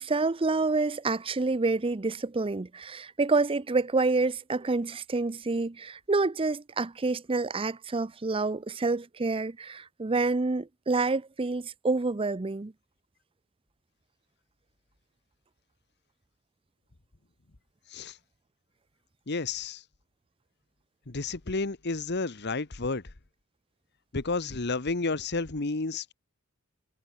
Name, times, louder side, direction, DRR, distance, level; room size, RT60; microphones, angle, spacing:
voice 1, 0.0-12.7, right 3 dB, 25° right, 0.6 m, -28 dB
voice 2, 19.3-19.8 21.1-23.0 24.1-26.1, left 3 dB, 55° left, 1.3 m, -31 dB
head